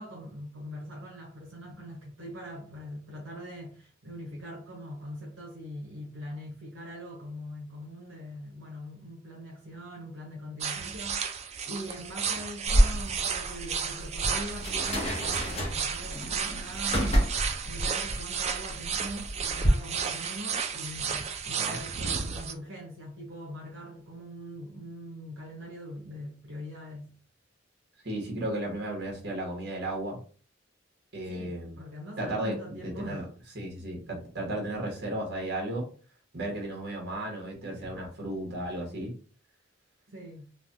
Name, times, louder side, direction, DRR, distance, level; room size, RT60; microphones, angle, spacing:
voice 1, 0.0-11.3 11.7-17.3 17.6-27.2 31.3-33.3 40.1-40.5, equal, 80° right, 0.9 m, -42 dB
sound 1, 10.6-22.5, right 6 dB, 35° right, 0.3 m, -33 dB
sound 2, 12.7-19.7, equal, 30° left, 0.8 m, -29 dB
voice 2, 28.0-30.2 31.1-31.8 32.2-33.2 33.5-35.8 36.3-39.1, right 1 dB, 55° right, 1.2 m, -34 dB
3.3 x 2.2 x 2.6 m
head